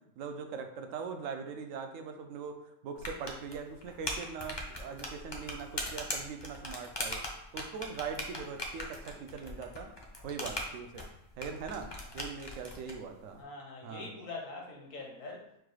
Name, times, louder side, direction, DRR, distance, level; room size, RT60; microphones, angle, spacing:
voice 1, 0.0-7.2 7.5-9.9 10.2-11.1 11.4-13.4 13.8-14.1, right 5 dB, 75° right, 6 dB, 0.9 m, -41 dB
sound 1, 3.0-12.9, left 1 dB, 35° left, 0.4 m, -40 dB
voice 2, 13.4-15.5, left 3 dB, 70° left, 1 dB, 1.2 m, -43 dB
4.8 x 2.3 x 4.7 m, 0.79 s
omnidirectional pair, 1.4 m